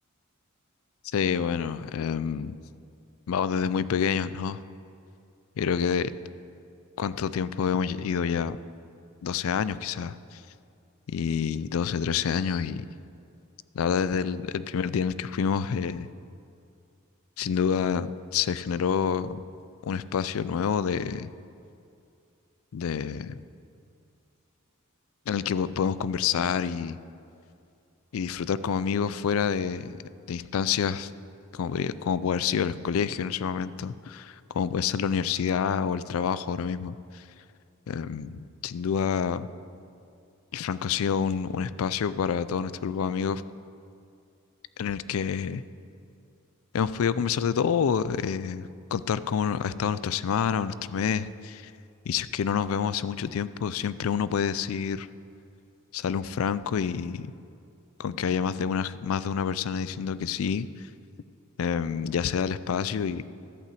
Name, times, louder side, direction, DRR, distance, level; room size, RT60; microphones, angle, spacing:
voice 1, 1.1-2.5 3.3-4.6 5.6-6.1 7.0-8.6 9.2-10.4 11.1-12.9 13.7-16.1 17.4-19.4 19.8-21.3 22.7-23.3 25.3-27.0 28.1-30.0 30.3-31.1 31.5-37.2 37.9-39.5 40.5-43.4 44.8-45.6 46.7-51.7 52.1-55.1 55.9-57.3 58.0-60.9 61.6-63.2, left 7 dB, 75° left, 16 dB, 0.4 m, -28 dB
12.0 x 5.6 x 7.6 m, 2.5 s
head